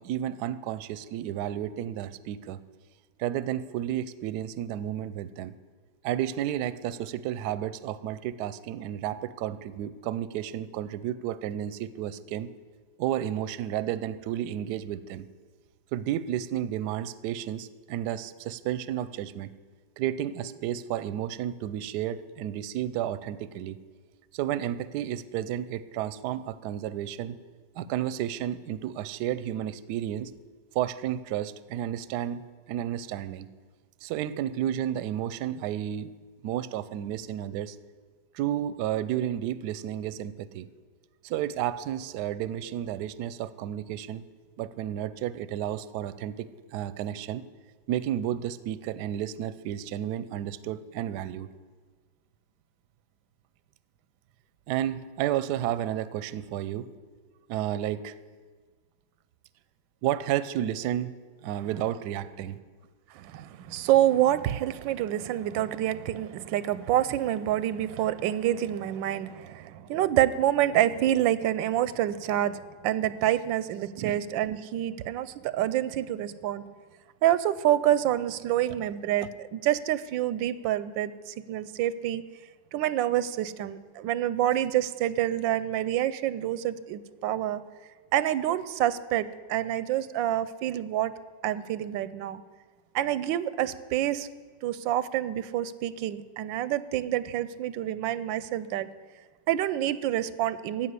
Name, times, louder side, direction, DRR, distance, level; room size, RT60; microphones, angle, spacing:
voice 1, 0.0-2.6 3.2-5.5 6.0-12.5 13.0-15.2 15.9-19.5 20.0-23.8 24.3-27.4 27.8-30.3 30.7-32.4 32.7-33.5 34.0-36.1 36.4-37.8 38.3-40.7 41.2-44.2 44.6-47.4 47.9-51.5 54.7-56.9 57.5-58.2 60.0-61.1 61.4-62.6 74.0-74.2, right 11 dB, 70° right, 16 dB, 1.1 m, -32 dB
voice 2, 63.1-76.6 77.2-82.2 82.7-87.6 88.1-91.1 91.4-92.4 92.9-94.3 94.6-98.9 99.5-100.9, right 12 dB, 90° right, 16 dB, 1.3 m, -27 dB
15.5 x 5.9 x 9.5 m, 1.5 s
omnidirectional pair, 2.0 m